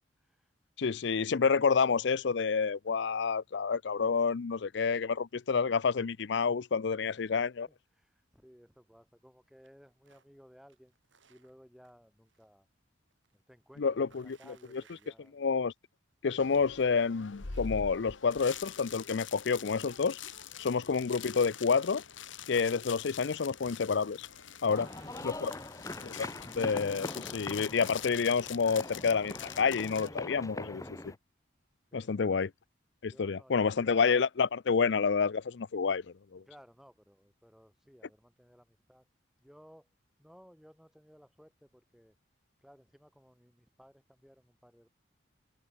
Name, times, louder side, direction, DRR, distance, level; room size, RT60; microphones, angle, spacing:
voice 1, 0.2-0.5 6.8-11.0 11.3-12.7 13.3-15.4 25.4-25.8 31.9-32.3 33.1-34.0 36.3-39.1 39.4-39.9 40.2-42.2 42.6-44.9, equal, ahead, 7.2 m, -59 dB
voice 2, 0.8-7.7 13.8-14.4 15.3-15.7 16.2-20.2 20.6-22.0 22.5-24.3 24.6-24.9 25.2-25.5 26.0-26.3 26.6-31.1 31.9-32.5 33.0-36.0 36.3-36.4, left 5 dB, 65° left, 0.5 m, -29 dB
sound 1, 9.6-10.4 10.7-12.5 12.8-15.8 16.1-16.2 16.6-18.9 19.2-20.5 22.0-22.1 22.3-22.4 22.7-26.0 26.3-29.3, right 6 dB, 80° right, 7.8 m, -67 dB
sound 2, 16.4-30.1, left 7 dB, 85° left, 1.5 m, -45 dB
sound 3, 24.7-31.2, left 2 dB, 15° left, 1.4 m, -42 dB
head